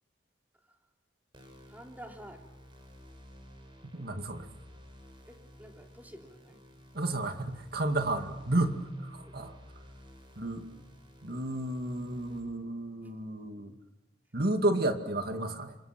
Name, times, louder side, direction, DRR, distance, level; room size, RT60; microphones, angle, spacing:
sound 1, 1.3-12.4, equal, 30° right, 6.1 m, -53 dB
voice 1, 1.7-2.5 5.3-6.6 9.2-9.3, right 1 dB, 10° right, 2 dB, 3.3 m, -49 dB
voice 2, 3.9-4.5 6.9-9.6 10.4-10.6 11.2-13.8 14.3-15.8, right 1 dB, 60° right, 6 dB, 2.3 m, -32 dB
28.5 x 27.0 x 6.0 m, 0.95 s
head